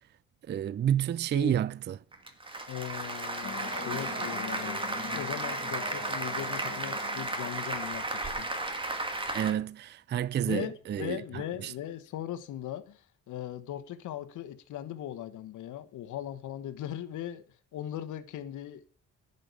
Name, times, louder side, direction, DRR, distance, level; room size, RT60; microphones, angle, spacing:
voice 1, 0.5-2.0 9.3-11.7, right 10 dB, 35° right, 0.4 m, -30 dB
Applause, 2.1-9.5, right 2 dB, 15° right, 2.1 m, -34 dB
voice 2, 2.7-4.8 5.1-8.5 10.4-17.4 17.7-18.8, left 11 dB, 80° left, 1.3 m, -39 dB
sound 1, 3.4-8.5, left 5 dB, 45° left, 2.3 m, -43 dB
11.0 x 5.6 x 8.2 m
cardioid pair, 90°, 30 cm